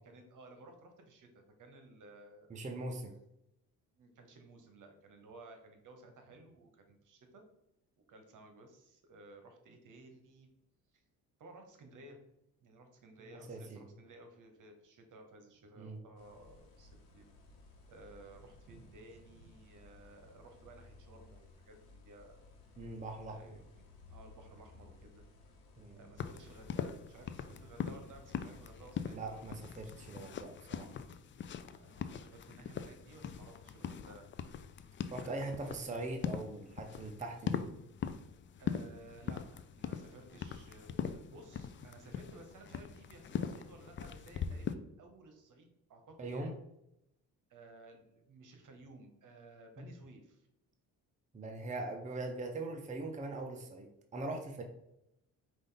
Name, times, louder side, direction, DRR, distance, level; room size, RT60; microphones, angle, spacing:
voice 1, 0.0-2.6 4.0-7.4 8.1-10.5 10.9-11.0 11.4-12.2 12.6-17.3 17.9-22.5 23.3-25.2 26.0-29.6 31.7-34.3 35.2-35.4 38.6-46.5 47.5-50.5, right 2 dB, 55° right, 5 dB, 1.1 m, -56 dB
voice 2, 2.5-3.2 13.3-13.9 15.8-16.0 22.8-23.4 25.8-26.0 29.1-30.9 35.1-37.7 46.2-46.5 49.8-49.9 51.3-54.6, right 2 dB, 20° right, 3 dB, 0.7 m, -41 dB
sound 1, 16.2-30.0, left 3 dB, 85° left, 1.1 m, -59 dB
sound 2, 26.2-44.7, left 7 dB, 35° left, 0.4 m, -42 dB
5.1 x 2.6 x 3.9 m, 0.83 s
supercardioid pair, 70°, 36 cm